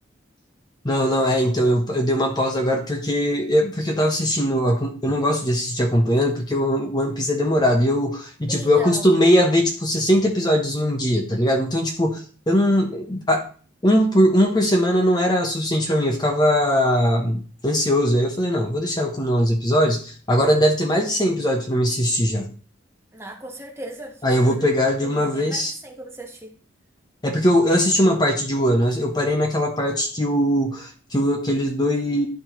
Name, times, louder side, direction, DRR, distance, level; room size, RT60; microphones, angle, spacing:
voice 1, 0.8-13.5 13.8-22.5 24.2-25.7 27.2-32.3, equal, 20° left, 2 dB, 0.8 m, -20 dB
voice 2, 8.5-9.1 23.1-24.7 25.0-26.5, right 1 dB, 15° right, 2 dB, 1.1 m, -37 dB
11.5 x 4.3 x 3.0 m, 0.40 s
head